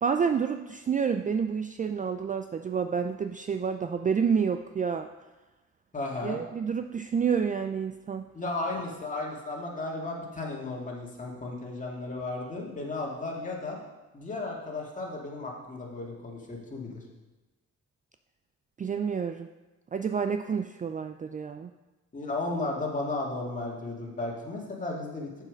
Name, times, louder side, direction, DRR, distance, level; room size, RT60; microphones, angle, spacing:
voice 1, 0.0-5.1 6.2-8.3 18.8-19.5 19.9-21.7, right 6 dB, 25° right, 7 dB, 0.4 m, -29 dB
voice 2, 5.9-6.4 8.3-13.8 14.1-17.0 22.1-25.3, left 2 dB, 25° left, -2 dB, 2.1 m, -34 dB
7.4 x 6.6 x 5.1 m, 1.1 s
cardioid pair, 90°, 30 cm